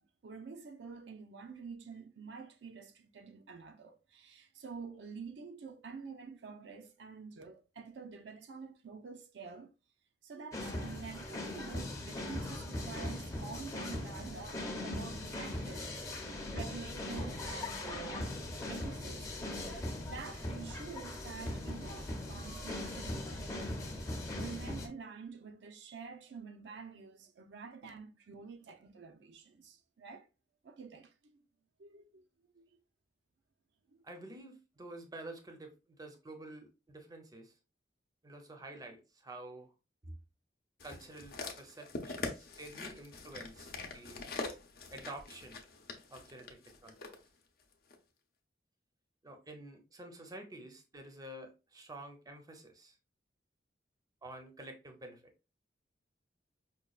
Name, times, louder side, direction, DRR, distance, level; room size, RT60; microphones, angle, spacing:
voice 1, 0.2-9.7 10.2-18.3 18.7-30.3 30.6-31.4 31.8-32.3 32.5-32.7 33.9-34.0 34.3-34.4, right 5 dB, 75° right, 0.5 m, -48 dB
sound 1, 10.5-24.9, left 1 dB, 20° left, 0.7 m, -40 dB
voice 2, 34.0-37.5 38.2-39.7 40.0-40.1 40.8-44.2 44.9-45.6 46.1-47.0 49.2-52.9 54.2-55.2, right 1 dB, 20° right, 0.6 m, -49 dB
sound 2, 40.8-47.2 47.9-48.0, left 3 dB, 55° left, 0.6 m, -43 dB
5.1 x 2.2 x 2.3 m
head